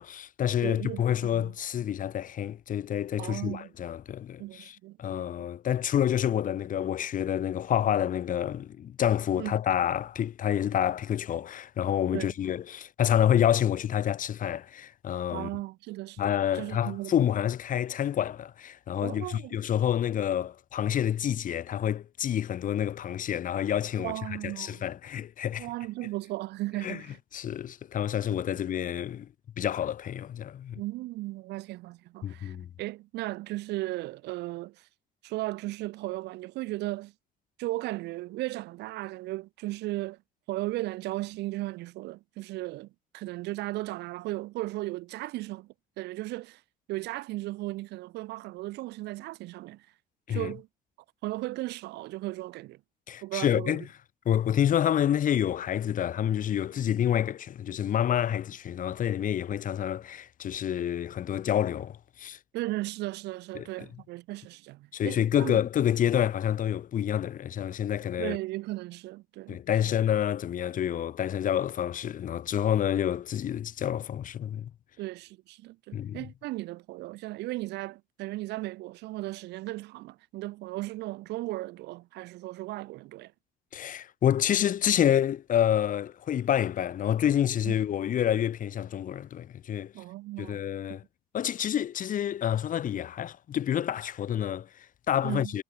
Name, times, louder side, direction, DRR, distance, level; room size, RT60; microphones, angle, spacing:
voice 1, 0.0-15.5 16.2-25.7 26.8-27.0 27.3-29.3 29.6-30.8 32.2-32.7 50.3-50.5 53.1-53.8 54.3-62.4 63.6-63.7 64.9-68.4 69.5-74.7 75.9-76.3 83.7-89.9 90.4-91.0 91.3-95.6, left 10 dB, 50° left, 1.9 m, -28 dB
voice 2, 0.6-1.5 3.2-3.7 4.4-5.2 9.4-9.5 12.1-12.3 15.3-17.1 19.0-19.6 24.0-24.9 25.6-27.2 28.3-28.4 30.7-34.9 35.2-37.1 37.6-40.2 40.5-42.9 43.1-46.6 46.9-49.9 50.3-50.7 51.2-52.8 53.2-53.8 62.5-65.6 68.2-69.9 75.0-83.3 87.6-87.7 89.9-90.6 90.9-91.0 95.2-95.5, right 18 dB, 85° right, 2.7 m, -36 dB
cardioid pair, 110°, 17 cm